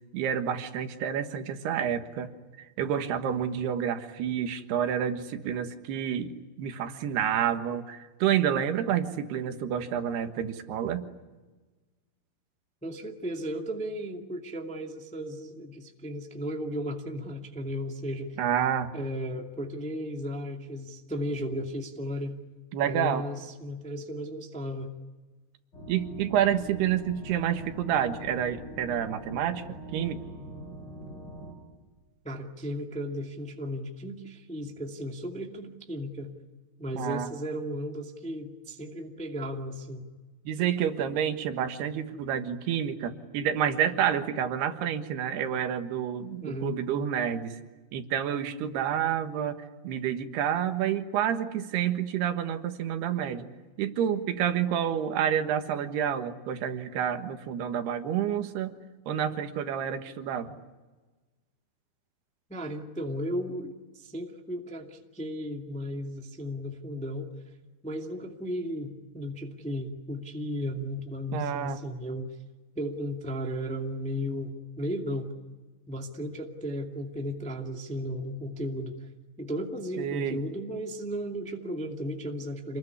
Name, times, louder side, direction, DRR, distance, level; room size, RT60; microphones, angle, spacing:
voice 1, 0.1-2.3 2.6-6.3 6.6-11.1 18.4-18.9 22.7-23.2 25.9-30.2 37.0-37.3 40.5-47.6 47.9-49.6 49.8-53.5 53.8-58.8 59.1-60.5 71.3-71.8 80.0-80.4, right 9 dB, 85° right, 8 dB, 3.6 m, -29 dB
voice 2, 12.8-18.4 18.9-22.4 22.8-24.9 32.2-36.3 36.8-40.0 46.4-46.8 62.5-67.3 67.8-72.3 72.7-75.3 75.9-79.1 79.4-82.8, equal, 5° left, 2 dB, 1.1 m, -35 dB
sound 1, 25.7-31.5, equal, 25° left, 6.9 m, -43 dB
27.5 x 21.0 x 9.7 m, 1.3 s
omnidirectional pair, 4.5 m